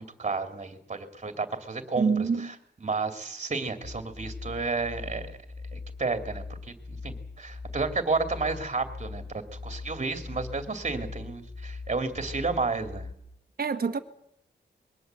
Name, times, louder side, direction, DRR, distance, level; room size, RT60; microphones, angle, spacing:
voice 1, 0.0-5.3 5.7-13.1, right 4 dB, 35° right, 2.5 m, -32 dB
voice 2, 2.0-2.5 13.6-14.0, right 5 dB, 55° right, 1.4 m, -26 dB
sound 1, 3.8-13.1, left 3 dB, 30° left, 8.0 m, -41 dB
22.0 x 18.0 x 8.1 m
wide cardioid pair, 115°, 18 cm